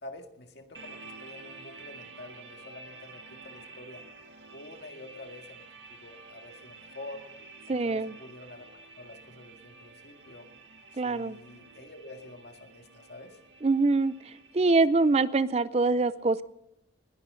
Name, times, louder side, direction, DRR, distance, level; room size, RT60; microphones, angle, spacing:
voice 1, 0.0-4.1 4.5-7.3 7.7-10.5 10.9-13.4, left 2 dB, 65° left, 5 dB, 2.0 m, -47 dB
sound 1, 0.7-15.3, right 3 dB, 80° right, 1.9 m, -50 dB
voice 2, 7.7-8.1 11.0-11.4 13.6-14.1 14.5-16.4, right 3 dB, 35° right, 16 dB, 0.5 m, -24 dB
20.5 x 17.0 x 3.8 m, 0.85 s
head